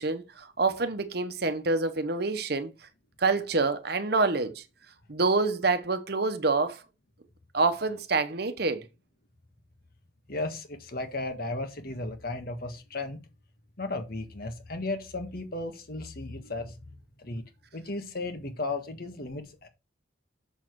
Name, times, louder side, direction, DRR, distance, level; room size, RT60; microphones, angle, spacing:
voice 1, 0.0-2.7 3.2-4.6 5.1-6.8 7.5-8.9, right 3 dB, 55° right, 1.0 m, -27 dB
voice 2, 10.3-13.2 13.8-17.4 17.7-19.7, left 2 dB, 50° left, 1.6 m, -35 dB
7.2 x 6.5 x 4.7 m
head